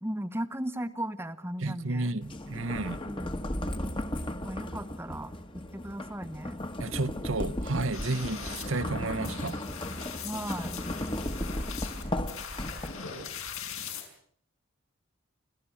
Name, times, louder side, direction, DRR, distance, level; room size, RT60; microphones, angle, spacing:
voice 1, 0.0-2.1 3.0-3.4 4.4-5.3 5.7-6.6 10.2-10.8, right 1 dB, 10° right, 1.0 m, -36 dB
voice 2, 1.6-3.0 6.8-9.6, right 2 dB, 70° right, 1.0 m, -32 dB
sound 1, 2.2-13.2, left 1 dB, 25° left, 1.4 m, -36 dB
sound 2, 7.9-14.0, left 5 dB, 80° left, 5.6 m, -40 dB
30.0 x 13.5 x 8.5 m
head